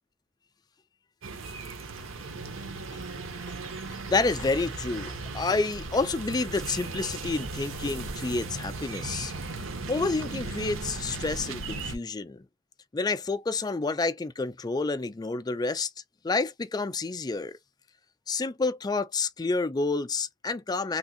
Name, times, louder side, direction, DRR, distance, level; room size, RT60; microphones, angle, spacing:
sound 1, 1.2-12.0, right 3 dB, 80° right, 0.8 m, -37 dB
voice 1, 4.1-9.3 9.9-12.4 12.9-15.9 16.2-17.6 18.3-21.0, left 3 dB, 20° left, 0.3 m, -29 dB
3.5 x 2.8 x 2.4 m
head